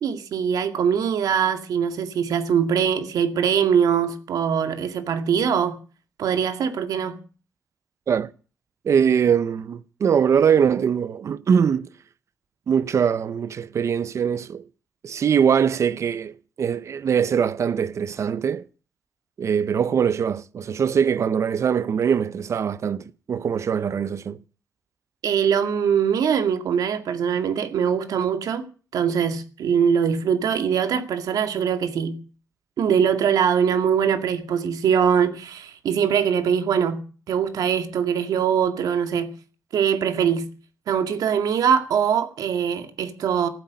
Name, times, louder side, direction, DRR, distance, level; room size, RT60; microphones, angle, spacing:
voice 1, 0.0-5.8 6.2-7.2 25.2-28.6 28.9-32.2 32.8-39.3 39.7-40.5 40.9-43.5, right 7 dB, 80° right, 2.1 m, -22 dB
voice 2, 8.8-11.9 12.7-14.6 15.0-18.6 19.4-24.4, right 7 dB, 50° right, 0.7 m, -22 dB
14.5 x 8.2 x 9.4 m
cardioid pair, 130°, 6 cm